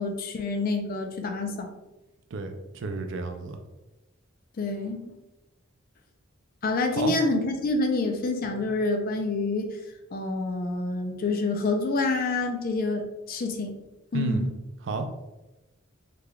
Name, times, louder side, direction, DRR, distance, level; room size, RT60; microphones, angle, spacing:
voice 1, 0.0-1.7 4.6-5.1 6.6-9.7 10.1-13.7 14.1-14.5, left 3 dB, 45° left, 4 dB, 0.4 m, -27 dB
voice 2, 2.3-3.6 6.9-7.1 14.1-14.4 14.8-15.1, right 3 dB, 65° right, 7 dB, 0.4 m, -31 dB
3.7 x 3.2 x 2.3 m, 1.0 s
head